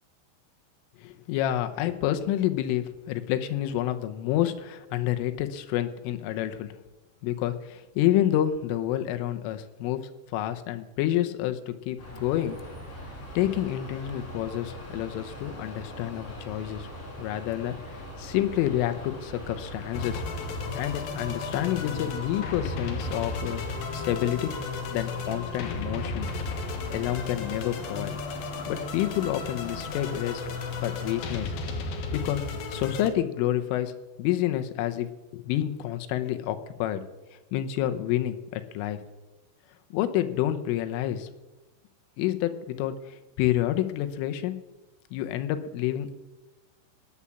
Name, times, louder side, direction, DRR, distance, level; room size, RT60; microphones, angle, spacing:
voice 1, 1.0-6.8 7.2-12.6 13.4-16.9 17.2-20.2 20.8-23.6 23.9-24.5 24.9-26.3 26.9-28.1 28.7-30.5 30.8-31.5 32.1-32.4 32.7-37.0 37.5-39.0 39.9-41.3 42.2-44.6 45.1-46.1, left 12 dB, 85° left, 8 dB, 3.4 m, -28 dB
sound 1, 12.0-31.4, equal, 30° left, 4.7 m, -41 dB
sound 2, 19.9-33.1, left 4 dB, 60° left, 2.6 m, -34 dB
17.0 x 9.9 x 7.2 m, 1.1 s
omnidirectional pair, 5.7 m